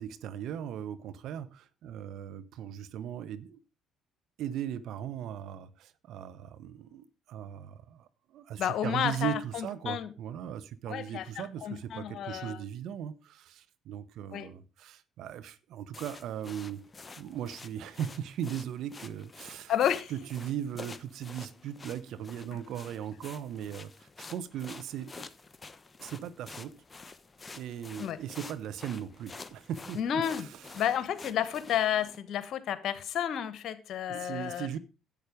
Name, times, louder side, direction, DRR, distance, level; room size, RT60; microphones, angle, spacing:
voice 1, 0.0-3.6 4.4-16.9 17.2-19.7 20.1-25.1 26.0-26.8 27.5-30.6 34.1-34.8, right 10 dB, 65° right, 1.0 m, -38 dB
voice 2, 8.6-10.1 10.9-12.6 14.3-14.5 19.7-20.1 28.0-28.2 30.0-30.5 30.7-34.7, left 9 dB, 60° left, 1.3 m, -31 dB
sound 1, 15.9-32.2, left 3 dB, 30° left, 1.1 m, -49 dB
11.0 x 8.3 x 5.0 m
hypercardioid pair, 55°, 0 cm